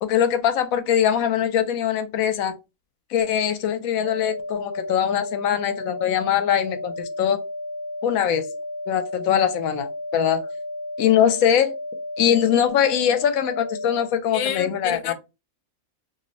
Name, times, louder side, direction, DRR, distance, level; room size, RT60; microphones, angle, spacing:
voice 1, 0.0-2.5 3.1-7.4 8.0-8.5 8.9-10.4 11.0-11.7 12.2-15.1, left 9 dB, 85° left, 1.0 m, -22 dB
sound 1, 4.0-14.0, left 2 dB, 60° right, 0.5 m, -33 dB
voice 2, 14.3-15.1, left 8 dB, 60° left, 0.5 m, -28 dB
2.6 x 2.1 x 3.8 m
omnidirectional pair, 1.4 m